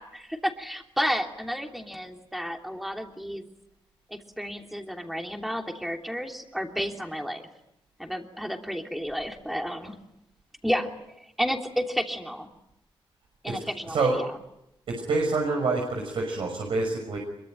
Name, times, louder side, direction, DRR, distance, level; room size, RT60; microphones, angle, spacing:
voice 1, 0.0-3.5 4.1-7.5 8.0-10.0 10.6-10.9 11.2-12.5 13.4-14.3, equal, ahead, 3 dB, 3.0 m, -31 dB
voice 2, 13.9-14.2 14.9-17.2, right 3 dB, 75° right, 1 dB, 6.1 m, -27 dB
26.0 x 23.5 x 9.2 m, 0.84 s
wide cardioid pair, 155°, 9 cm